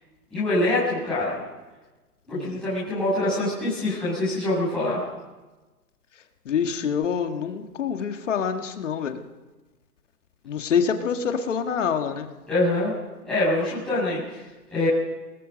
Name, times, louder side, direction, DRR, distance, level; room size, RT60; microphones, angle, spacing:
voice 1, 0.3-1.4 2.3-5.0 12.5-12.9 13.2-14.9, left 1 dB, ahead, -11 dB, 7.1 m, -25 dB
voice 2, 6.5-9.2 10.5-12.3, left 7 dB, 45° left, 6 dB, 1.7 m, -26 dB
24.5 x 20.0 x 5.3 m, 1.2 s
hypercardioid pair, 155°, 49 cm